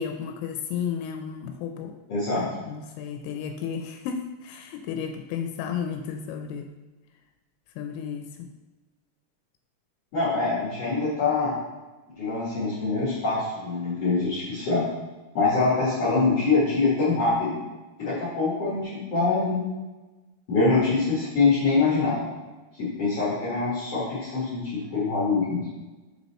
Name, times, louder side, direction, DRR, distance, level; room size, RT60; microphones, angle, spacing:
voice 1, 0.0-1.9 2.3-6.7 7.8-8.5, left 7 dB, 90° left, 4 dB, 2.8 m, -33 dB
voice 2, 2.1-2.4 10.1-11.5 12.2-14.8 15.3-17.6 18.0-19.6 20.5-22.3 22.8-25.6, left 3 dB, 50° left, -9 dB, 1.9 m, -24 dB
6.2 x 4.1 x 4.2 m, 1.2 s
omnidirectional pair, 5.0 m